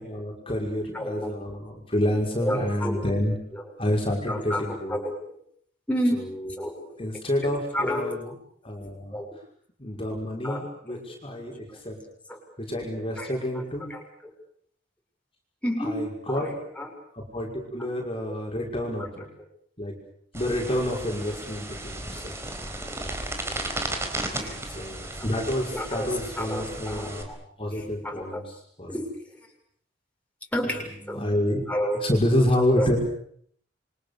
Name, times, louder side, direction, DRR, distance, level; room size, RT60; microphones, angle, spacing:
voice 1, 0.0-3.4 3.8-4.9 6.6-8.3 8.6-9.2 9.8-12.0 12.6-13.9 15.8-16.5 17.1-19.3 19.8-19.9 20.3-22.4 24.7-27.3 27.6-29.0 31.1-31.6 32.0-33.0, left 1 dB, 30° left, 0 dB, 5.8 m, -28 dB
voice 2, 0.9-1.3 2.4-3.1 3.5-3.6 4.3-4.6 4.9-5.2 5.9-6.2 6.6-7.1 7.4-8.1 9.1-9.3 10.4-10.6 10.9-11.0 12.3-12.4 13.2-13.6 13.9-14.3 15.6-16.0 16.3-16.9 17.8-17.9 24.3-24.6 25.7-26.1 26.4-27.4 27.7-28.4 28.9-29.0 30.5-31.3 31.7-32.0 32.8-33.0, equal, 10° left, 1 dB, 6.6 m, -30 dB
sound 1, 20.3-27.2, right 1 dB, 15° right, 4.4 m, -35 dB
29.0 x 25.0 x 7.0 m, 0.64 s
head